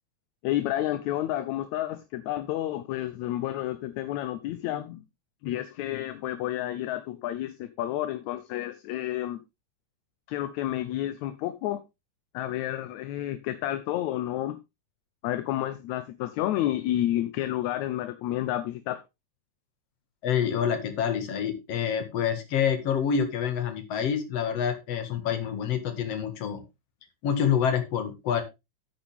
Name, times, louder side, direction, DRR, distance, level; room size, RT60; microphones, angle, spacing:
voice 1, 0.4-5.0 5.4-9.4 10.3-11.8 12.3-14.6 15.2-19.0, left 13 dB, 75° left, 2.0 m, -30 dB
voice 2, 20.2-26.6 27.2-28.4, left 8 dB, 60° left, 2.7 m, -27 dB
9.4 x 8.8 x 3.5 m
omnidirectional pair, 3.4 m